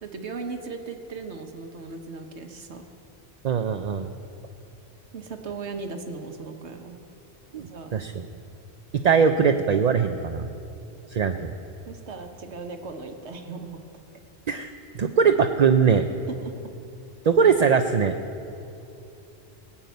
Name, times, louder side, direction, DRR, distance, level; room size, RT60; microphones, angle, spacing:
voice 1, 0.0-2.9 5.1-7.0 7.6-7.9 11.9-13.8 16.4-16.5, right 4 dB, 75° right, 5 dB, 1.3 m, -37 dB
voice 2, 3.4-4.1 7.5-7.7 7.9-8.3 8.9-10.5 11.1-11.5 14.5-16.0 17.2-18.2, right 6 dB, 50° right, 7 dB, 0.5 m, -21 dB
19.0 x 7.3 x 9.3 m, 2.8 s
omnidirectional pair, 1.2 m